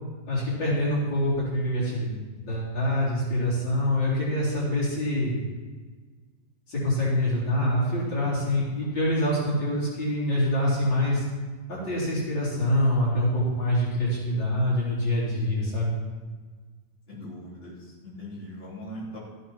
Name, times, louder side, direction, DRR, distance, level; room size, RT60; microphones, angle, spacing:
voice 1, 0.3-2.2 2.4-5.4 6.7-11.3 11.7-15.9, left 1 dB, 70° left, -8 dB, 4.8 m, -25 dB
voice 2, 17.1-19.2, equal, 30° left, -7 dB, 3.8 m, -40 dB
14.0 x 8.0 x 5.8 m, 1.4 s
omnidirectional pair, 2.0 m